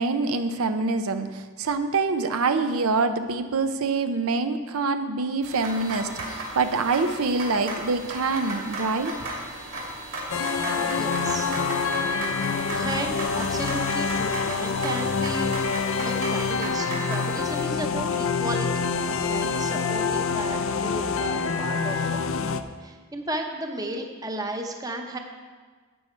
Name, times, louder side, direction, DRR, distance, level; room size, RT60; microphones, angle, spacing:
voice 1, 0.0-9.1, right 3 dB, 80° right, 8 dB, 0.6 m, -25 dB
sound 1, 5.4-17.6, right 1 dB, 60° right, 2.6 m, -35 dB
sound 2, 10.3-22.6, left 5 dB, 65° left, 0.5 m, -26 dB
voice 2, 10.8-11.5 12.7-15.5 16.0-25.2, right 1 dB, 15° right, 3 dB, 0.8 m, -34 dB
11.5 x 8.5 x 4.4 m, 1.4 s
head